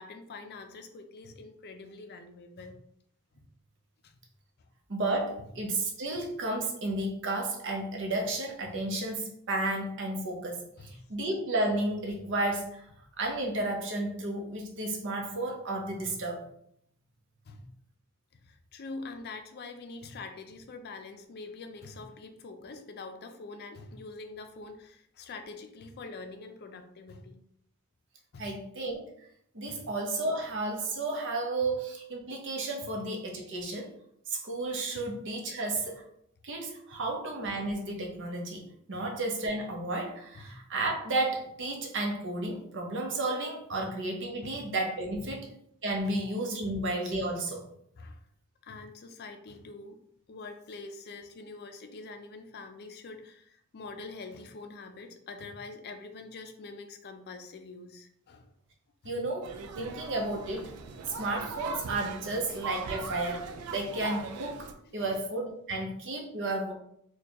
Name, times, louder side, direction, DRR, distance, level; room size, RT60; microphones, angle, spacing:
voice 1, 0.0-2.8 4.0-4.1 4.6-4.7 8.7-8.8 10.8-10.9 17.5-17.7 18.4-27.4 28.3-28.5 29.7-29.8 32.9-33.0 34.9-35.1 38.9-39.0 40.4-40.5 44.4-44.6 45.3-45.4 46.0-46.2 46.6-46.8 48.0-48.2 48.6-50.0 50.3-58.5 59.0-59.2 62.3-62.4 65.0-65.2 65.7-65.9, left 3 dB, 45° left, 6 dB, 0.4 m, -45 dB
voice 2, 4.9-12.8 13.2-16.4 28.4-29.3 29.5-33.9 34.3-36.0 36.4-45.5 45.8-47.6 59.0-59.5 59.8-60.7 61.1-66.7, right 2 dB, 55° right, 1 dB, 0.8 m, -32 dB
sound 1, 59.4-64.7, right 4 dB, 80° right, 0.4 m, -40 dB
4.3 x 2.3 x 2.9 m, 0.70 s
head